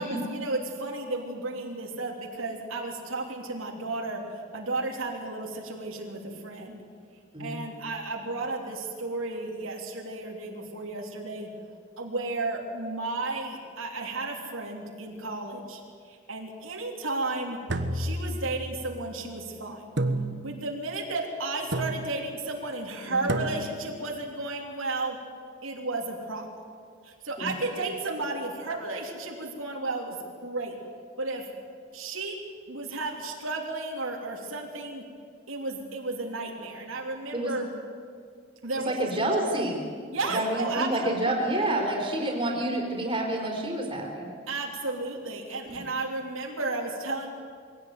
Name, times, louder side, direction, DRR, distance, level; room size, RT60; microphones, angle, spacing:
voice 1, 0.0-6.8 7.4-11.5 12.0-17.6 17.9-19.8 20.4-25.2 25.6-26.5 27.0-30.7 31.2-31.4 31.9-32.4 32.7-35.0 35.5-37.7 38.6-39.3 40.1-41.3 44.5-47.3, right 2 dB, 85° right, 0 dB, 3.2 m, -33 dB
sound 1, 17.7-18.9 20.0-20.8 21.7-22.3 23.3-24.0, right 1 dB, 55° right, 1.3 m, -31 dB
voice 2, 38.8-39.8 40.2-44.3 45.7-45.8, right 1 dB, 25° right, -1 dB, 4.2 m, -28 dB
22.5 x 16.5 x 9.6 m, 2.1 s
head